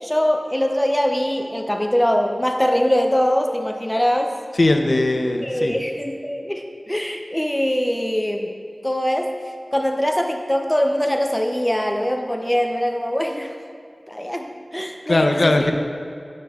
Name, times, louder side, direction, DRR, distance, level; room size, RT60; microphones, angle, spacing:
voice 1, 0.0-4.4 5.4-8.5 8.8-9.3 9.7-13.5 14.1-15.7, equal, 10° left, 3 dB, 0.4 m, -22 dB
voice 2, 4.6-5.7 15.1-15.7, left 2 dB, 60° left, 5 dB, 0.5 m, -19 dB
9.4 x 6.2 x 2.3 m, 2.4 s
wide cardioid pair, 60°, 0 cm